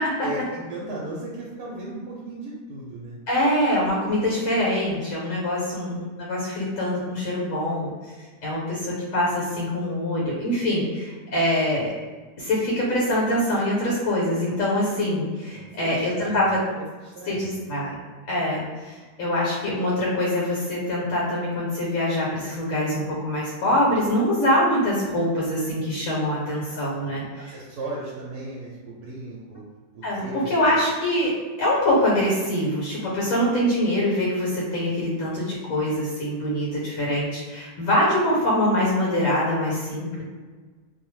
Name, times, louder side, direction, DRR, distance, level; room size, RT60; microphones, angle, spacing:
voice 1, 0.2-3.2 15.5-16.8 17.1-17.6 27.0-29.6 29.9-30.7, right 2 dB, 75° right, -5 dB, 1.0 m, -36 dB
voice 2, 3.3-7.9 8.4-11.9 12.4-16.6 17.2-17.9 18.3-27.5 30.0-31.3 31.6-40.2, left 1 dB, 65° left, -5 dB, 1.1 m, -24 dB
2.7 x 2.0 x 3.1 m, 1.4 s
omnidirectional pair, 1.7 m